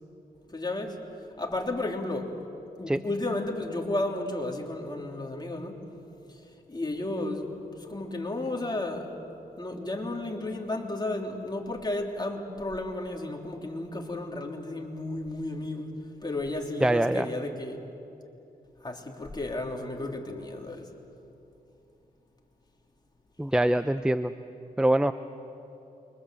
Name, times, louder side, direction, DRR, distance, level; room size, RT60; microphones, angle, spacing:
voice 1, 0.5-1.0 1.4-2.3 2.8-5.8 6.7-9.1 9.6-15.9 16.2-17.8 18.8-20.9, left 2 dB, 25° left, 1 dB, 3.5 m, -33 dB
voice 2, 16.8-17.3 23.4-24.3 24.8-25.1, right 1 dB, 5° right, 11 dB, 0.7 m, -23 dB
28.5 x 24.0 x 7.8 m, 2.9 s
cardioid pair, 70°, 16 cm